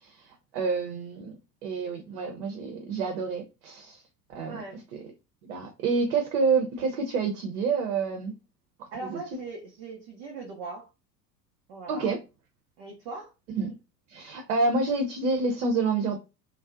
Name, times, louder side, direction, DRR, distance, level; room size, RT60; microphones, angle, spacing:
voice 1, 0.0-4.0 4.3-4.6 5.4-8.3 9.0-9.2 11.9-12.2 13.6-13.7 14.1-16.2, right 4 dB, 50° right, 0.7 m, -28 dB
voice 2, 4.4-4.9 8.9-10.9 11.7-12.1 12.8-13.3, right 3 dB, 25° right, 0.3 m, -40 dB
2.5 x 2.0 x 2.4 m
figure-of-eight pair, 75°, 49 cm